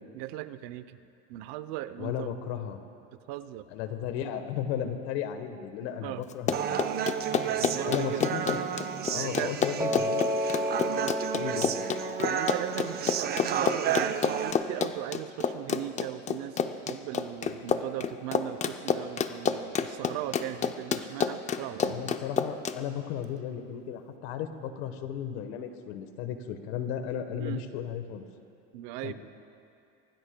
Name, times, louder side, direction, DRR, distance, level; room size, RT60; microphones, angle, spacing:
voice 1, 0.1-1.0 1.3-2.3 3.3-3.7 6.0-6.3 7.4-8.4 9.1-9.5 10.9-11.2 12.2-22.2 27.4-27.7 28.7-29.1, right 14 dB, 75° right, 13 dB, 0.7 m, -38 dB
voice 2, 2.0-2.8 3.7-6.8 7.8-8.6 9.1-10.2 11.3-11.7 21.9-28.3 29.0-29.1, left 9 dB, 90° left, 8 dB, 1.2 m, -35 dB
Run, 6.3-22.8, left 7 dB, 25° left, 0.4 m, -29 dB
Human voice, 6.5-14.5, right 9 dB, 30° right, 0.5 m, -32 dB
Piano, 9.8-15.9, equal, 10° right, 0.8 m, -34 dB
25.0 x 18.0 x 2.2 m, 2.6 s
cardioid pair, 145°, 32 cm